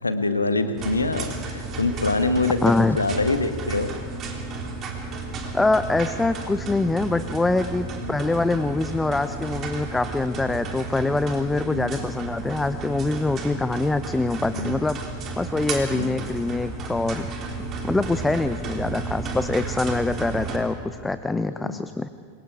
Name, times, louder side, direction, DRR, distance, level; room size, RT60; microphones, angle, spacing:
voice 1, 0.0-3.9 8.0-8.1 11.7-11.9 14.5-14.8 15.9-16.2 21.5-21.8, left 3 dB, 80° left, 9 dB, 1.4 m, -25 dB
sound 1, 0.8-20.6, right 3 dB, 30° right, 3.2 m, -33 dB
voice 2, 2.6-3.0 5.5-15.0 15.4-17.3 17.8-22.1, left 2 dB, 10° left, 12 dB, 0.6 m, -24 dB
28.0 x 22.5 x 4.8 m, 2.1 s
figure-of-eight pair, 90°, 0 cm